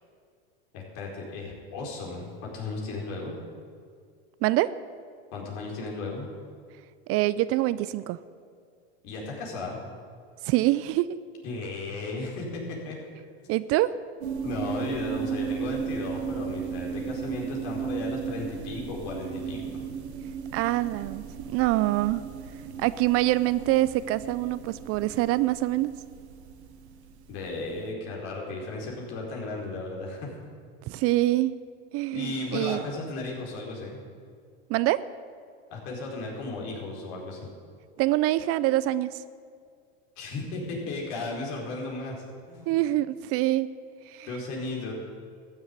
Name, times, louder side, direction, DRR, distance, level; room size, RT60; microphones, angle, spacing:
voice 1, 0.7-3.4 5.3-6.3 9.0-9.8 11.4-13.0 13.4-13.5 14.4-19.8 27.3-30.4 32.1-34.0 35.7-37.5 40.2-42.2 42.5-42.8 44.3-44.9, left 3 dB, 60° left, -2 dB, 4.4 m, -35 dB
voice 2, 7.1-8.2 10.4-11.1 13.5-13.9 20.5-22.2 22.8-25.9 30.9-31.5 31.9-32.8 34.7-35.0 38.0-39.1 42.7-43.7 44.1-44.3, right 16 dB, 45° right, 16 dB, 0.5 m, -25 dB
sound 1, 14.2-27.6, right 7 dB, 85° right, 1.6 m, -35 dB
14.0 x 7.2 x 9.5 m, 2.2 s
supercardioid pair, 110°, 32 cm